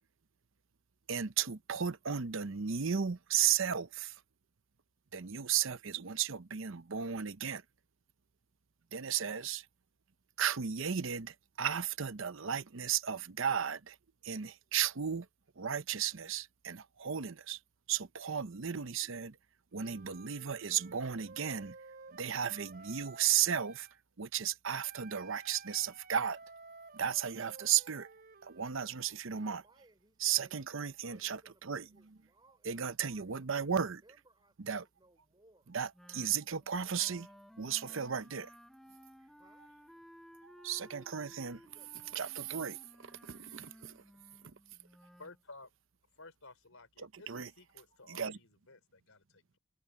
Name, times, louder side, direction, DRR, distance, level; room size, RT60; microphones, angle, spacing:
voice 1, 1.1-4.2 5.1-7.6 8.9-9.7 10.4-14.0 14.2-15.3 15.6-17.6 17.9-19.4 19.7-21.8 22.1-23.9 24.2-26.4 26.9-28.1 28.4-29.6 30.2-31.8 32.7-34.0 34.6-34.8 35.7-37.3 37.6-38.5 40.4-41.6 42.1-44.0 47.0-47.5 48.1-48.4, right 8 dB, 60° right, 0.7 m, -34 dB
Wind instrument woodwind instrument, 19.7-24.0 24.8-28.7, right 4 dB, 45° right, 3.3 m, -54 dB
voice 2, 28.7-30.6 31.1-35.7 39.4-39.7 41.6-42.2, right 1 dB, 20° right, 3.8 m, -66 dB
Wind instrument woodwind instrument 2, 35.9-45.4, equal, ahead, 0.7 m, -57 dB
voice 3, 45.2-45.7 46.2-49.6, left 3 dB, 70° left, 4.4 m, -55 dB
head